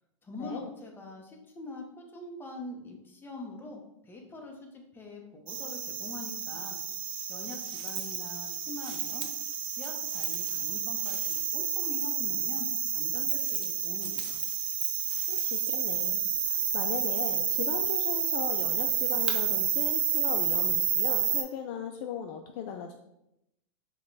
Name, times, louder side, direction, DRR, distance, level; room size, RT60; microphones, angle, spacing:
voice 1, 0.2-6.8 7.3-9.3 9.7-14.4, left 2 dB, 15° left, 1 dB, 0.8 m, -44 dB
sound 1, 5.5-21.4, right 8 dB, 30° right, 0.5 m, -30 dB
voice 2, 15.3-23.0, left 8 dB, 45° left, 5 dB, 0.4 m, -38 dB
4.8 x 2.2 x 3.9 m, 0.85 s
hypercardioid pair, 120°, 17 cm